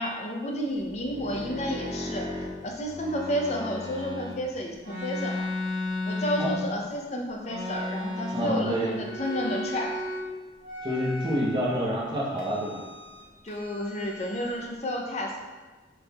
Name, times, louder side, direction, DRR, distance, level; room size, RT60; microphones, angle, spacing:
voice 1, 0.0-2.3 2.6-5.5 6.0-9.9 13.4-15.4, equal, 35° left, 1 dB, 0.5 m, -31 dB
sound 1, 0.8-4.3 4.8-6.9 7.4-8.7 8.9-10.3 10.6-11.8 12.3-13.2 13.5-14.7, left 1 dB, 50° right, 1.4 m, -35 dB
voice 2, 8.3-9.0 10.8-12.8, equal, 25° right, -6 dB, 0.7 m, -28 dB
6.2 x 3.4 x 2.3 m, 1.3 s
head